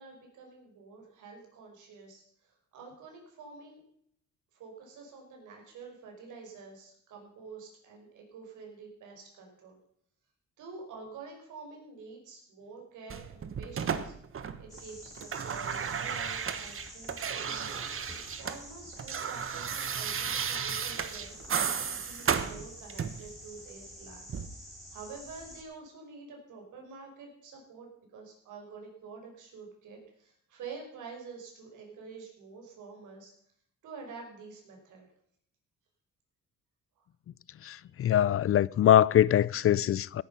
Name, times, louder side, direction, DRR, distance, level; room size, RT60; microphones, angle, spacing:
voice 1, 0.0-3.8 4.5-9.8 10.6-14.2 14.6-17.8 18.4-24.3 24.5-33.3 33.8-35.1 37.0-37.1 37.8-37.9, right 4 dB, 80° right, 5.3 m, -48 dB
sound 1, 13.1-14.8 15.1-18.6 18.9-23.3 24.3-24.5, right 7 dB, 45° right, 1.3 m, -34 dB
sound 2, 14.7-25.6, equal, ahead, 5.4 m, -49 dB
voice 2, 37.6-40.2, left 11 dB, 45° left, 0.5 m, -23 dB
17.5 x 10.5 x 5.6 m
cardioid pair, 90°, 30 cm